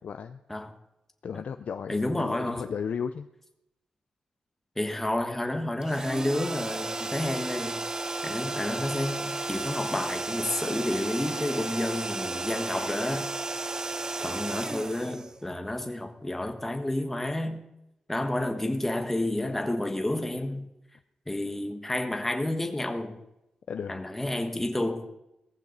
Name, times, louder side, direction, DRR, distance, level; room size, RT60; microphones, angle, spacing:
voice 1, 0.0-0.4 1.2-3.3 23.7-24.0, left 7 dB, 65° left, 8 dB, 0.6 m, -34 dB
voice 2, 1.9-2.6 4.8-7.8 8.2-13.3 14.2-17.6 18.1-20.6 21.3-23.2 23.9-25.1, left 1 dB, 10° left, 5 dB, 1.5 m, -30 dB
sound 1, 5.8-15.8, right 2 dB, 25° right, 0.6 m, -33 dB
18.5 x 14.5 x 4.1 m, 0.87 s
wide cardioid pair, 155°, 3 cm